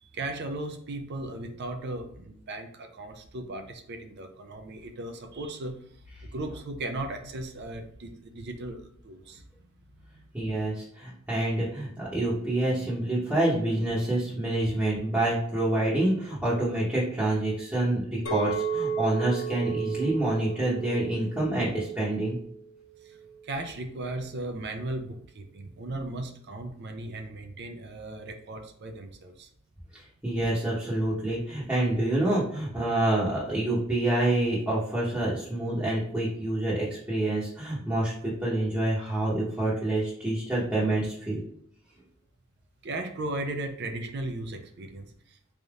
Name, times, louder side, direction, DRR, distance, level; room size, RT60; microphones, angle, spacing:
voice 1, 0.0-5.8 6.2-9.4 10.2-10.3 23.0-23.2 23.4-29.5 42.8-45.5, right 2 dB, 55° right, 5 dB, 0.5 m, -37 dB
voice 2, 10.3-22.4 29.9-41.4, right 1 dB, 10° right, -8 dB, 0.9 m, -27 dB
Chink clink, 18.3-22.6 23.1-23.4, right 6 dB, 80° left, 0.7 m, -33 dB
4.0 x 3.4 x 2.4 m, 0.69 s
head